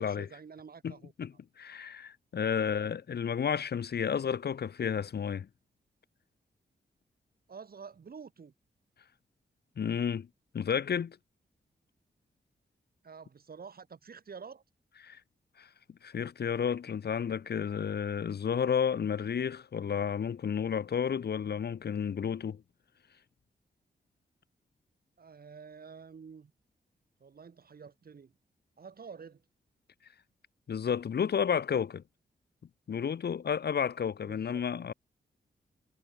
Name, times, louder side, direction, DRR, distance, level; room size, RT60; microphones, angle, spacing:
voice 1, 0.0-1.1 2.6-2.9 7.5-8.5 13.0-14.6 25.2-26.5 27.2-28.3 28.8-29.4 34.2-34.6, right 6 dB, 60° right, 4.3 m, -49 dB
voice 2, 0.8-5.5 9.8-10.3 10.5-11.2 15.0-15.2 15.6-15.7 16.0-22.6 30.7-32.0 32.9-34.9, left 7 dB, 65° left, 1.3 m, -31 dB
cardioid pair, 80°, 18 cm